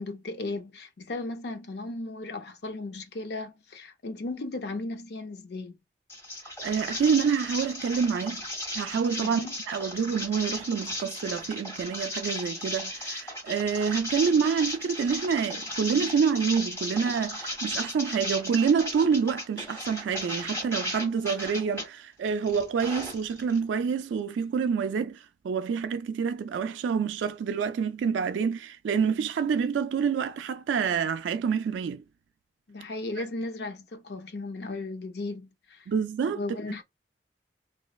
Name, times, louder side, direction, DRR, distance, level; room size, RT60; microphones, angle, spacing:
voice 1, 0.0-5.8 9.2-9.5 32.7-35.8 36.2-36.8, left 2 dB, 65° left, 0.6 m, -36 dB
sound 1, 6.1-21.9 22.3-23.6, left 1 dB, 15° left, 1.6 m, -36 dB
voice 2, 6.6-8.4 8.7-32.0 35.9-36.4, right 6 dB, 85° right, 0.3 m, -27 dB
3.2 x 3.0 x 2.3 m
head